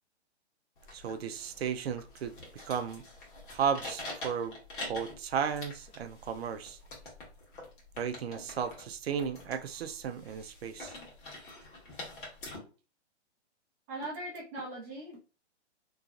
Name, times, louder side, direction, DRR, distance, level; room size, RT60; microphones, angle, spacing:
sound 1, 0.8-12.6, left 2 dB, 45° left, 1.4 m, -46 dB
voice 1, 0.9-3.0 3.5-4.6 4.9-6.8 8.0-10.9, right 7 dB, 60° right, 9 dB, 0.5 m, -34 dB
voice 2, 13.9-15.2, right 1 dB, 15° right, -6 dB, 0.7 m, -40 dB
3.0 x 2.7 x 2.4 m, 0.34 s
hypercardioid pair, 165°, 35 cm